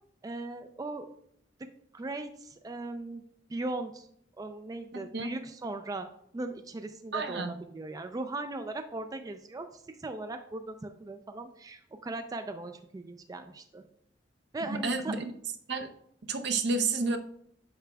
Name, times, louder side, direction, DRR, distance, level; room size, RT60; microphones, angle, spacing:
voice 1, 0.2-1.1 1.6-3.2 3.5-4.1 4.4-13.8 14.5-15.1, right 2 dB, 20° right, 7 dB, 0.3 m, -38 dB
voice 2, 7.1-7.5 14.8-15.3 15.7-15.9 16.3-17.2, right 4 dB, 65° right, 7 dB, 0.6 m, -30 dB
8.0 x 6.0 x 2.3 m, 0.68 s
head